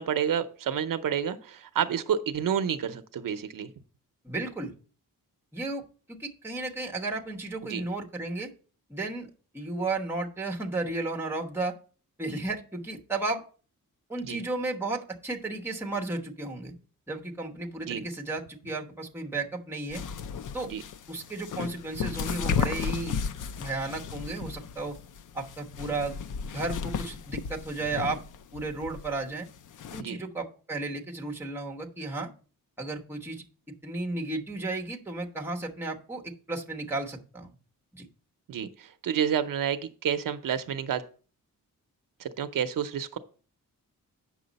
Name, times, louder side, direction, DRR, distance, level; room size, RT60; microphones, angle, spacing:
voice 1, 0.0-3.7 7.7-7.8 14.2-14.4 17.9-18.0 20.6-20.8 30.0-30.2 38.5-41.0 42.2-43.2, right 8 dB, 70° right, 10 dB, 0.7 m, -29 dB
voice 2, 4.2-4.7 5.5-5.8 6.1-8.5 8.9-9.3 9.5-11.7 12.2-13.4 14.1-16.7 17.1-20.0 20.5-20.7 21.1-23.2 23.6-25.0 25.3-28.3 28.5-29.5 29.9-32.3 32.8-33.4 33.8-37.5 37.9-38.1, right 2 dB, 5° right, 0 dB, 1.1 m, -33 dB
sound 1, 19.9-30.0, left 6 dB, 65° left, 0.5 m, -34 dB
8.6 x 6.1 x 4.0 m, 0.40 s
wide cardioid pair, 150°, 34 cm